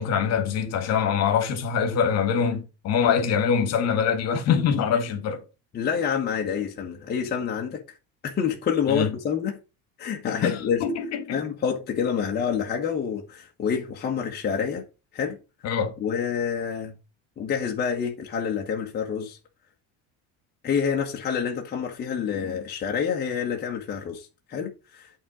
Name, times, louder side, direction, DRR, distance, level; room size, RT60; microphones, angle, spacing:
voice 1, 0.0-5.4 8.9-9.1 10.4-11.4 15.6-15.9, left 7 dB, 55° left, 1.8 m, -24 dB
voice 2, 5.7-8.0 8.2-9.6 10.0-10.9 11.3-14.9 15.1-15.4 16.0-16.9 17.4-19.4 20.6-25.1, left 7 dB, 30° left, 1.4 m, -27 dB
8.6 x 3.9 x 6.2 m
cardioid pair, 135°, 31 cm